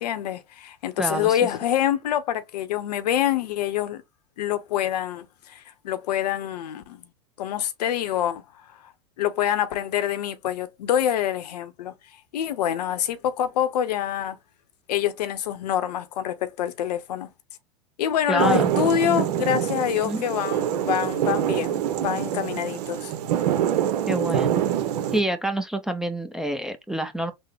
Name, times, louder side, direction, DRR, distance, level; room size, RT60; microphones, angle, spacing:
voice 1, 0.0-4.0 4.4-7.0 7.4-8.4 8.8-8.9 9.2-11.9 12.3-14.4 14.9-17.3 18.0-23.1, left 10 dB, 85° left, 0.7 m, -26 dB
voice 2, 1.0-1.4 18.3-18.7 19.0-19.3 20.1-20.2 24.1-24.6 25.1-27.3, right 1 dB, ahead, 0.4 m, -27 dB
sound 1, 18.4-25.2, right 10 dB, 80° right, 0.7 m, -25 dB
3.6 x 2.0 x 3.2 m
hypercardioid pair, 115°, 20 cm